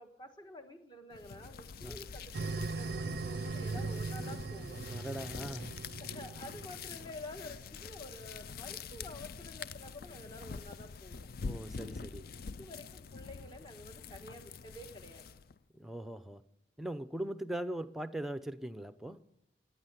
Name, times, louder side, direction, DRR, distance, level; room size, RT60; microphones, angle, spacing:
voice 1, 0.0-4.8 6.0-11.3 12.4-15.3, left 1 dB, 25° left, 6 dB, 1.4 m, -49 dB
sound 1, 1.1-15.6, left 5 dB, 55° left, 0.4 m, -45 dB
sound 2, 2.3-7.2, right 3 dB, 60° right, 0.4 m, -39 dB
voice 2, 4.9-5.8 11.4-12.2 15.7-16.4 16.8-19.3, right 1 dB, ahead, 12 dB, 0.6 m, -40 dB
15.0 x 9.8 x 8.0 m, 0.88 s
head